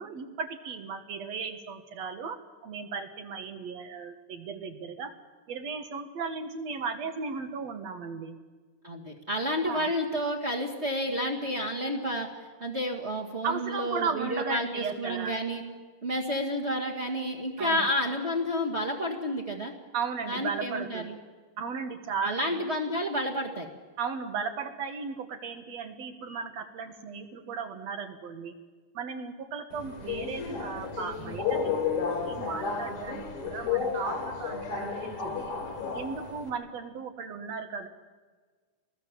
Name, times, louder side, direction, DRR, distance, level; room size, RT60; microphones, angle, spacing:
voice 1, 0.0-5.1 5.5-8.4 9.7-9.9 13.4-15.3 17.6-17.9 19.9-21.1 21.6-22.6 24.0-28.5 28.9-35.4 35.9-37.9, right 5 dB, 60° right, 7 dB, 2.7 m, -36 dB
voice 2, 8.8-12.3 12.6-15.6 16.0-19.7 20.3-21.1 22.2-23.7, equal, 25° right, 0 dB, 1.9 m, -30 dB
Subway metro underground, 29.7-36.5, left 6 dB, 70° left, 4.2 m, -32 dB
25.0 x 20.0 x 7.5 m, 1.4 s
omnidirectional pair, 3.6 m